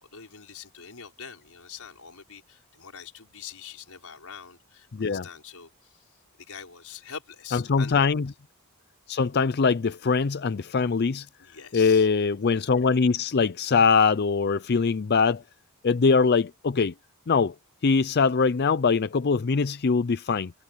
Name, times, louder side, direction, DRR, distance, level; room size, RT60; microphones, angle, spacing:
voice 1, 0.0-8.0 11.4-12.1, left 7 dB, 80° left, 5.0 m, -44 dB
voice 2, 4.9-5.2 7.5-8.3 9.1-11.3 11.7-15.4 15.8-16.9 17.3-17.5 17.8-20.5, left 5 dB, 45° left, 0.5 m, -22 dB
head